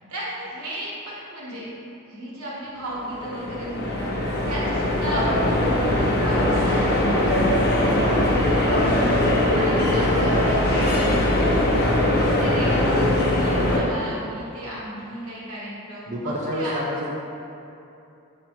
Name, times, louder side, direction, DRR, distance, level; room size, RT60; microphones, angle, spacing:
voice 1, 0.1-1.7 2.0-4.1 4.4-8.2 8.4-11.9 12.2-16.8, right 1 dB, 85° right, -6 dB, 1.0 m, -34 dB
sound 1, 2.9-13.8, left 1 dB, 50° left, 0.5 m, -21 dB
voice 2, 16.1-17.1, equal, 35° right, -4 dB, 0.4 m, -28 dB
4.3 x 2.1 x 4.2 m, 2.8 s
head